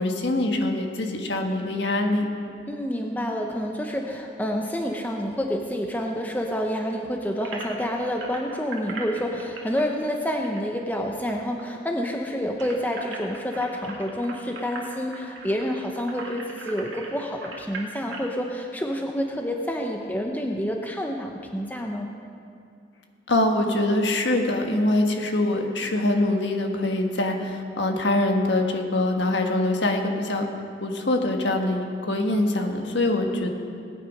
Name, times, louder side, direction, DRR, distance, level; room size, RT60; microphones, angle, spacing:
voice 1, 0.0-2.3 23.3-30.5 30.8-33.5, left 1 dB, 70° left, 3 dB, 1.5 m, -24 dB
voice 2, 2.7-22.1, equal, 10° left, 2 dB, 0.8 m, -28 dB
sound 1, 7.4-11.3 11.6-11.7 12.0-18.3, right 3 dB, 80° right, 2.2 m, -40 dB
19.0 x 9.4 x 5.3 m, 2.4 s
head